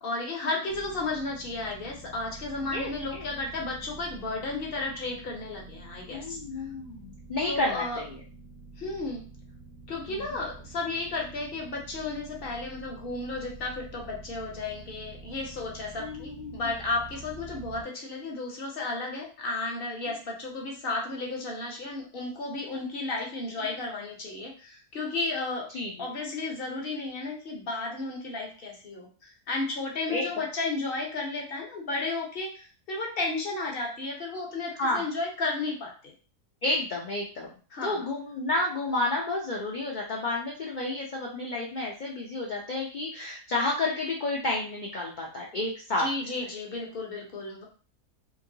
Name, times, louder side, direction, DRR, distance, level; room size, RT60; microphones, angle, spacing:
voice 1, 0.0-6.4 7.5-8.0 8.8-9.3 9.9-25.7 26.0-36.1 37.7-38.1 46.0-47.6, left 3 dB, 45° left, 0 dB, 0.8 m, -33 dB
sound 1, 0.7-17.8, right 3 dB, 80° right, 1.3 m, -47 dB
voice 2, 2.6-3.3 6.1-8.2 10.1-10.3 16.0-16.7 20.1-20.2 23.6-23.7 25.7-26.1 30.1-30.2 34.8-35.1 36.6-37.5 37.8-46.1, left 2 dB, 70° left, -3 dB, 0.4 m, -31 dB
3.0 x 2.8 x 2.7 m, 0.39 s
omnidirectional pair, 1.6 m